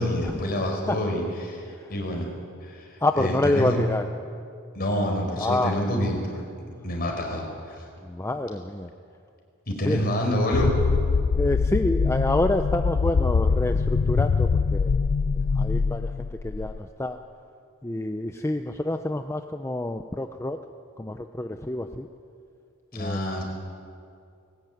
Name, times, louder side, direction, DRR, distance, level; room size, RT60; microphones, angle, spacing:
voice 1, 0.0-1.6 1.9-2.3 2.6-2.9 3.2-3.8 4.7-6.4 6.8-7.7 9.7-10.7 22.9-23.4, equal, 45° left, 1 dB, 4.9 m, -27 dB
voice 2, 3.0-4.1 5.4-5.8 8.0-8.9 9.8-10.0 11.3-15.0 15.3-17.2 17.8-20.6 21.0-22.1 22.9-23.2, left 1 dB, 10° left, 6 dB, 0.6 m, -27 dB
sound 1, 10.5-16.8, left 5 dB, 70° left, 0.5 m, -23 dB
20.0 x 18.5 x 9.3 m, 2.4 s
head